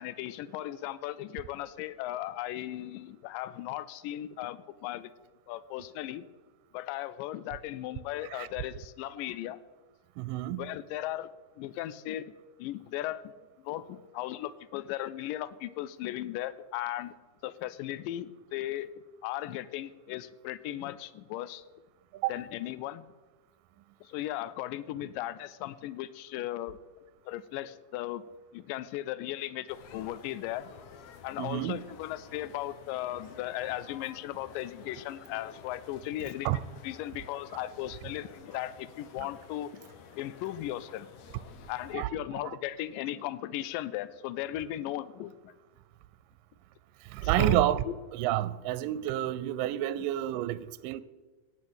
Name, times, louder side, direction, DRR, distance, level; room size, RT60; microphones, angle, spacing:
voice 1, 0.0-5.1 5.5-6.2 6.7-9.6 10.5-11.3 11.6-12.2 12.6-13.3 13.7-17.1 17.4-18.9 19.2-21.6 22.3-23.0 24.1-26.8 27.3-28.2 28.5-30.7 31.2-36.5 36.8-39.8 40.1-41.1 41.7-45.3 47.2-48.0, left 14 dB, 85° left, 2.3 m, -37 dB
voice 2, 10.2-10.7 22.2-22.4 31.4-31.8 36.5-36.6 41.9-42.6 47.1-47.8 48.1-51.0, right 14 dB, 85° right, 2.2 m, -29 dB
sound 1, 29.7-42.0, left 7 dB, 65° left, 1.9 m, -52 dB
17.0 x 6.4 x 8.8 m
omnidirectional pair, 3.8 m